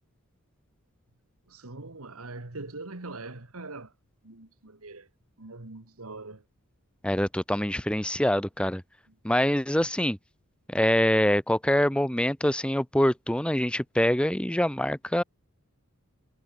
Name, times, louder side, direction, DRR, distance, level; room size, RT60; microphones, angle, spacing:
voice 1, 1.5-3.9 4.2-5.1 5.4-6.4, right 2 dB, 75° right, 2.0 m, -42 dB
voice 2, 7.0-8.8 9.2-10.2 10.7-15.2, left 1 dB, 5° left, 0.9 m, -25 dB
head